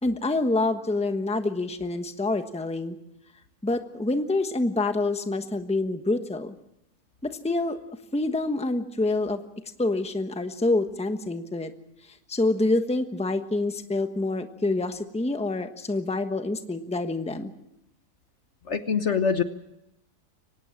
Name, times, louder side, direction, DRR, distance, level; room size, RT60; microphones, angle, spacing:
voice 1, 0.0-3.0 3.6-6.5 7.2-7.8 8.1-9.4 9.8-11.7 12.3-17.5, left 2 dB, 5° left, 7 dB, 1.1 m, -27 dB
voice 2, 18.7-19.4, left 6 dB, 50° left, 9 dB, 1.2 m, -24 dB
24.0 x 18.5 x 7.3 m, 0.83 s
omnidirectional pair, 1.7 m